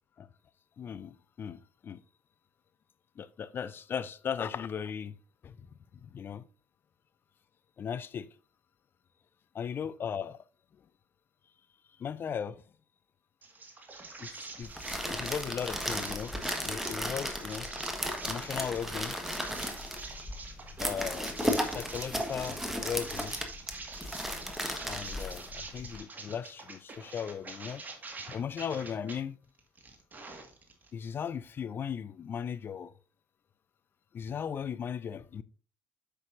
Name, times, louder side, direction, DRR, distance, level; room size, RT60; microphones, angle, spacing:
voice 1, 0.8-2.0 3.2-5.2 5.4-5.6 6.0-6.4 7.8-8.3 9.5-10.4 12.0-12.6 14.2-16.3 16.6-17.7 18.2-19.2 20.8-23.4 24.6-27.8 28.3-29.4 30.9-32.9 34.1-35.4, left 7 dB, 35° left, 0.5 m, -37 dB
sound 1, 13.4-29.2 29.6-30.9, right 3 dB, 30° right, 1.8 m, -46 dB
sound 2, 14.6-26.0, equal, 5° right, 1.5 m, -35 dB
9.4 x 6.8 x 2.6 m
figure-of-eight pair, 55°, 6 cm